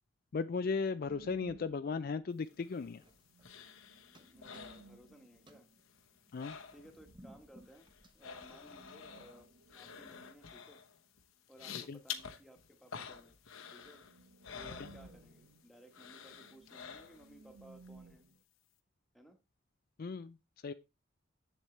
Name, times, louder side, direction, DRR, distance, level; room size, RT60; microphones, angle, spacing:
voice 1, 0.3-3.0 6.3-6.6 11.9-12.0 20.0-20.4 20.6-20.7, left 4 dB, 45° left, 0.4 m, -36 dB
sound 1, 1.0-2.6 2.9-3.0 3.1-6.3 8.6-10.7 13.2-13.3 13.6-18.4, right 3 dB, 80° right, 1.2 m, -59 dB
sound 2, 2.5-5.5 5.8-7.1 7.4-15.6 15.9-17.4 17.8-17.9, left 7 dB, 80° left, 1.0 m, -49 dB
sound 3, 2.7-3.8 4.1-5.0 5.3-9.1, equal, 25° right, 1.0 m, -61 dB
voice 2, 4.3-5.7 6.7-10.8 11.5-13.4 13.7-14.0 14.5-18.3 19.1-19.4, right 1 dB, ahead, 1.3 m, -59 dB
7.9 x 7.4 x 3.2 m
head